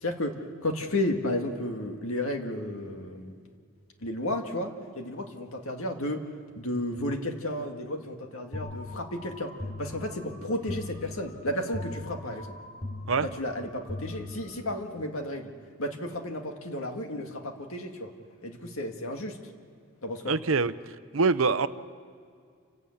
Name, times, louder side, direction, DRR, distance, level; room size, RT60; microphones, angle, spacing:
voice 1, 0.0-3.4 4.0-6.2 6.6-9.5 9.8-12.5 13.2-15.5 15.8-18.1 18.4-19.4 20.0-20.3, left 1 dB, 80° left, 4 dB, 1.9 m, -33 dB
sound 1, 8.5-14.9, left 2 dB, 35° left, 3.2 m, -40 dB
voice 2, 20.3-20.7 21.1-21.7, right 4 dB, 75° right, 13 dB, 0.8 m, -24 dB
29.0 x 12.5 x 8.7 m, 2.2 s
head